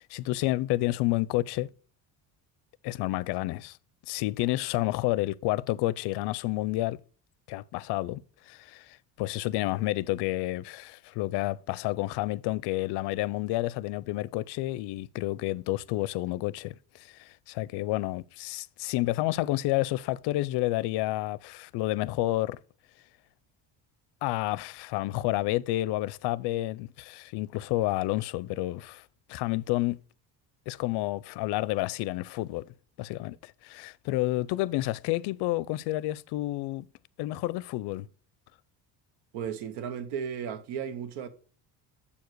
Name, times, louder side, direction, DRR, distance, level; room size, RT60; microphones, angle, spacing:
voice 1, 0.0-1.7 2.8-3.8 4.1-7.0 7.5-8.2 8.5-16.7 17.0-22.6 24.2-29.0 29.3-30.0 30.7-32.6 33.0-36.9 37.2-38.1, left 17 dB, 75° left, 0.5 m, -30 dB
voice 2, 39.3-41.3, right 7 dB, 85° right, 1.0 m, -35 dB
7.1 x 4.8 x 4.5 m
cardioid pair, 145°, 40 cm